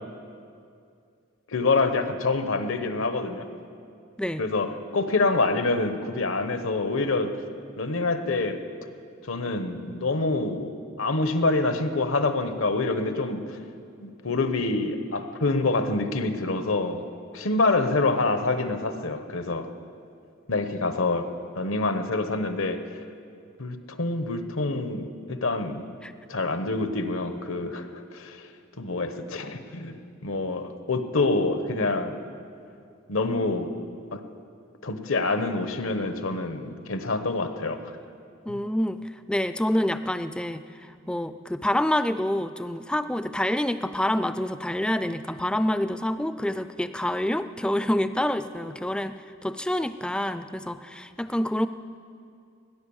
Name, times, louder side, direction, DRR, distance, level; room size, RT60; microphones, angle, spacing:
voice 1, 1.5-3.5 4.4-7.4 7.8-8.6 9.2-10.7 11.0-13.6 14.0-17.0 17.3-19.7 20.5-21.3 21.5-22.8 23.6-25.8 26.3-28.5 28.8-32.2 33.1-33.8 34.1-34.2 34.8-38.0 38.5-38.6, left 3 dB, 80° left, 9 dB, 1.1 m, -26 dB
voice 2, 38.5-39.0 39.3-40.6 41.1-51.7, left 1 dB, 5° left, 12 dB, 0.3 m, -27 dB
17.5 x 10.5 x 7.1 m, 2.4 s
head